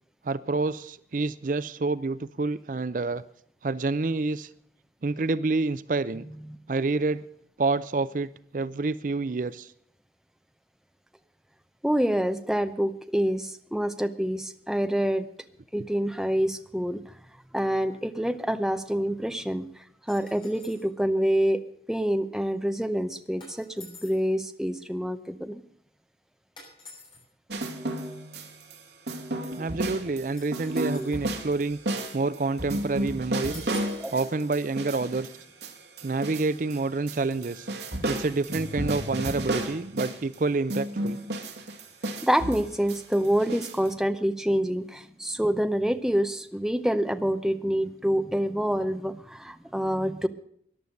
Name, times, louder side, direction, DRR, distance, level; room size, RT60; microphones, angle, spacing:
voice 1, 0.2-3.2 3.6-4.5 5.0-6.2 6.7-7.2 7.6-9.7 29.6-31.8 32.1-33.7 34.1-35.3 36.0-37.7 38.1-41.2, right 3 dB, 45° right, 16 dB, 0.5 m, -28 dB
voice 2, 11.8-15.3 15.7-17.2 17.5-21.6 21.9-25.6 34.0-34.1 42.2-50.3, equal, 5° right, 8 dB, 0.7 m, -27 dB
sound 1, 20.1-20.9 23.4-24.3 26.6-27.2 30.4-31.3 33.5-34.1, left 3 dB, 25° left, 6.0 m, -49 dB
sound 2, 27.5-28.8 29.1-36.8 37.1-40.4 40.7-43.9, right 1 dB, 70° right, 2.3 m, -33 dB
14.0 x 11.0 x 6.5 m, 0.67 s
head